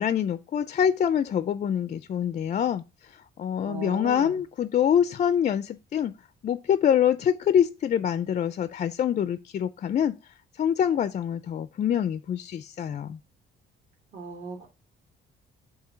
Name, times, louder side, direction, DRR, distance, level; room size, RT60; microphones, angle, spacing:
voice 1, 0.0-2.8 3.1-6.1 6.4-10.1 10.6-13.2, left 9 dB, 40° left, 0.4 m, -25 dB
voice 2, 3.6-4.4 14.1-14.7, right 4 dB, 45° right, 2.0 m, -38 dB
7.6 x 2.7 x 5.4 m
cardioid pair, 140°, 20 cm